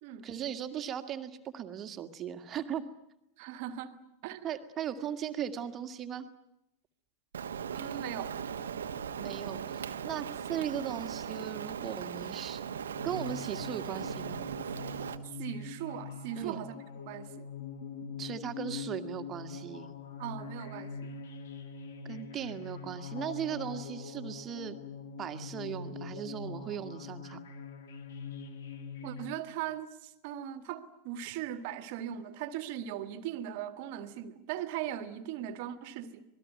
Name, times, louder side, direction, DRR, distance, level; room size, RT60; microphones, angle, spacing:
voice 1, 0.2-2.8 4.4-6.3 9.2-12.6 13.0-14.4 16.4-16.6 18.2-19.9 22.0-24.8 25.2-27.4, right 9 dB, 30° right, 2.0 m, -38 dB
voice 2, 3.4-4.0 4.2-4.6 7.7-8.4 15.4-16.8 17.0-17.5 20.2-21.2 29.0-36.2, right 10 dB, 45° right, 1.9 m, -39 dB
Rain, 7.3-15.2, right 7 dB, 65° right, 1.3 m, -38 dB
sound 1, 13.0-29.3, left 5 dB, 60° left, 2.4 m, -43 dB
26.5 x 19.5 x 9.5 m
figure-of-eight pair, 90°, 0 cm